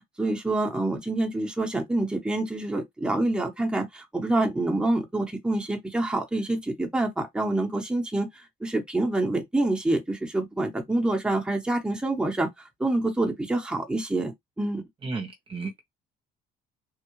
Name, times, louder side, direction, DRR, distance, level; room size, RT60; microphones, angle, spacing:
voice 1, 0.2-8.3 8.6-12.5 12.8-14.8, right 2 dB, 5° right, 1.0 m, -26 dB
voice 2, 15.0-15.8, right 4 dB, 30° right, 0.8 m, -33 dB
3.6 x 2.3 x 3.1 m
cardioid pair, 110°, 17 cm